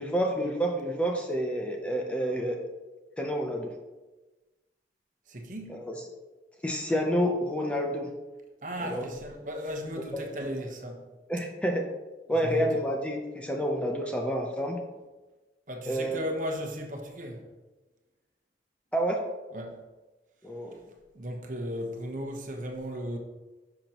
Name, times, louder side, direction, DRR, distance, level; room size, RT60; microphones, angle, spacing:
voice 1, 0.0-2.6 3.2-3.7 5.7-5.9 6.6-8.1 8.8-9.0 11.3-11.8 12.3-14.8 15.9-16.2 18.9-19.2 20.4-20.8, equal, 5° left, 0.7 m, -29 dB
voice 2, 5.3-5.9 8.6-11.1 12.3-12.8 15.7-17.5 19.5-19.8 20.7-23.2, equal, 45° right, 1.1 m, -36 dB
10.5 x 6.0 x 3.0 m
head